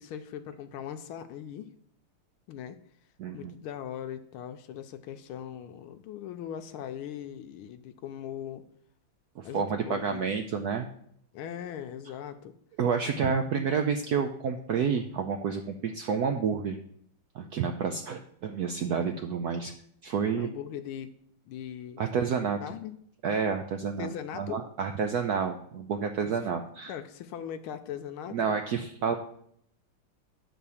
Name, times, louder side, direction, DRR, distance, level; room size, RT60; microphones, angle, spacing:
voice 1, 0.0-1.7 2.5-2.8 3.3-8.6 9.4-10.4 11.3-12.5 20.3-21.1 21.4-22.0 22.6-22.9 23.8-24.7 26.2-26.3 26.8-28.6, left 9 dB, 85° left, 8 dB, 1.5 m, -40 dB
voice 2, 3.2-3.5 9.4-10.9 12.8-16.8 17.3-19.7 20.0-20.5 22.0-22.6 23.2-26.9 28.3-29.1, right 6 dB, 85° right, 6 dB, 0.8 m, -29 dB
10.0 x 4.0 x 7.0 m, 0.68 s
omnidirectional pair, 2.4 m